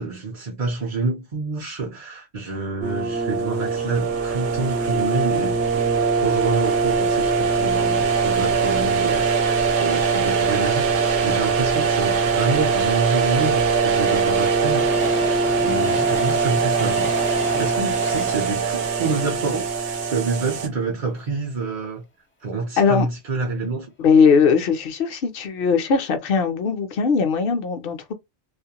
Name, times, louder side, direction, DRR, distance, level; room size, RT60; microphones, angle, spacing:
voice 1, 0.0-5.6 6.2-9.3 9.8-15.2 15.6-17.2 17.5-19.7 20.1-22.1 22.4-23.9, right 4 dB, 45° right, 0.5 m, -27 dB
sound 1, 2.8-20.7, right 5 dB, 75° right, 0.9 m, -21 dB
Train, 13.1-20.4 20.9-21.0 21.2-21.3, equal, 20° left, 0.3 m, -34 dB
voice 2, 22.8-23.1 24.0-28.1, left 5 dB, 60° left, 0.7 m, -19 dB
2.4 x 2.0 x 2.8 m
omnidirectional pair, 1.2 m